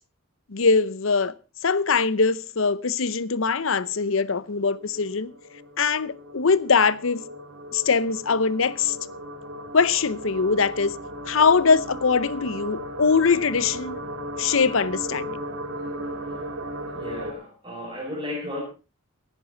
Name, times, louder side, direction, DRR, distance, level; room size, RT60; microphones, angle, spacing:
voice 1, 0.5-1.3 1.6-5.3 5.8-7.2 7.7-9.0 9.7-10.9 11.3-14.0 14.4-15.4, left 5 dB, 75° left, 0.7 m, -22 dB
sound 1, 2.1-2.6 2.9-3.0 3.2-17.3, equal, 80° right, 2.9 m, -37 dB
voice 2, 16.9-18.6, left 1 dB, 20° right, 5.2 m, -34 dB
17.0 x 11.0 x 3.9 m
head